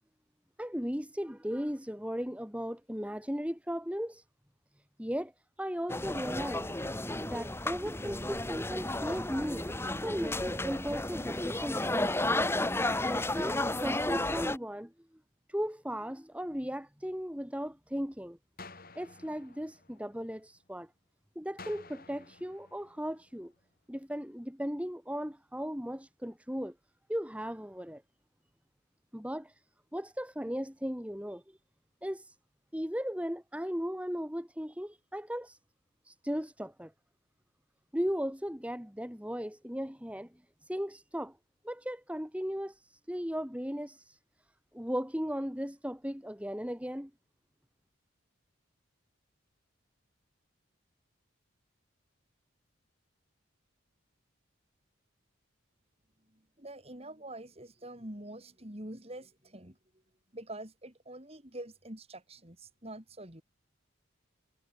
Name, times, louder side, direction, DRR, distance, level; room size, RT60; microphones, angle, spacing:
voice 1, 0.6-4.2 5.0-5.3 5.6-6.8 7.1-9.7 10.0-12.2 13.0-14.9 15.5-18.4 18.9-20.9 21.3-23.5 23.9-26.7 27.1-28.0 29.1-29.6 29.9-31.6 32.0-32.3 32.7-35.6 36.0-36.9 37.9-40.3 40.6-41.4 41.6-44.2 44.7-47.1, equal, 5° right, 2.9 m, -36 dB
sound 1, 5.9-14.6, left 2 dB, 10° left, 1.5 m, -32 dB
sound 2, 18.6-20.6 21.6-23.6, left 3 dB, 45° left, 5.6 m, -53 dB
voice 2, 56.3-59.8 60.3-63.4, right 1 dB, 30° right, 4.1 m, -45 dB
head